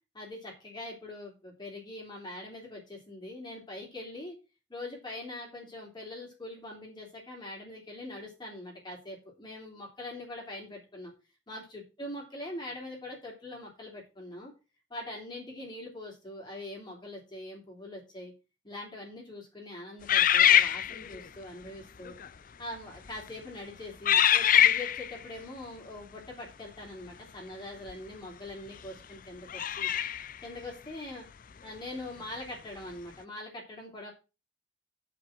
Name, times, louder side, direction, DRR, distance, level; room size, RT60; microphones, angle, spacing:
voice 1, 0.1-4.3 4.7-11.1 11.5-14.5 14.9-18.3 18.6-22.1 22.6-29.9 30.4-31.3 31.6-34.1, left 1 dB, 25° left, -1 dB, 3.4 m, -43 dB
sound 1, 20.1-21.3 22.1-22.3 23.0-23.3 24.1-25.2 27.9-28.0 29.5-30.4, left 10 dB, 50° left, 0.5 m, -23 dB
9.3 x 5.8 x 6.1 m, 0.29 s
head